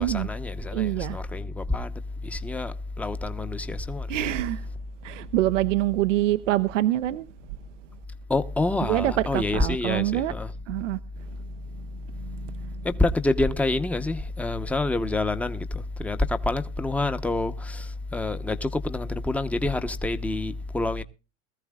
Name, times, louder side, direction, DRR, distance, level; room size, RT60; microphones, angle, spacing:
voice 1, 0.0-1.9 2.2-4.1 8.3-10.5 12.8-21.0, left 2 dB, 5° left, 0.8 m, -27 dB
voice 2, 0.7-1.2 4.1-4.7 5.0-7.3 8.8-10.3 10.7-11.0 12.2-12.8, right 15 dB, 85° right, 0.8 m, -25 dB
21.5 x 14.0 x 2.3 m
hypercardioid pair, 110°, 36 cm